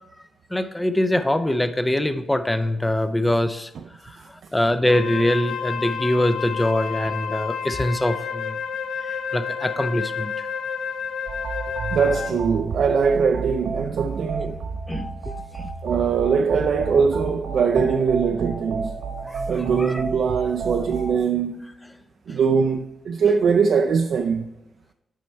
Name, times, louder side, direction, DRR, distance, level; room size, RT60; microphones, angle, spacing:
voice 1, 0.5-3.7 4.0-8.6 9.0-10.5 14.9-15.7 19.2-19.4 19.8-20.0 22.3-22.4, left 1 dB, 10° left, 0.4 m, -24 dB
Wind instrument woodwind instrument, 4.8-12.5, left 7 dB, 80° left, 0.5 m, -30 dB
sound 1, 11.3-21.2, right 4 dB, 75° right, 1.1 m, -31 dB
voice 2, 11.9-14.6 15.8-18.9 19.5-21.7 22.3-24.5, right 6 dB, 60° right, 0.4 m, -21 dB
7.6 x 5.3 x 4.5 m
wide cardioid pair, 150°, 0 cm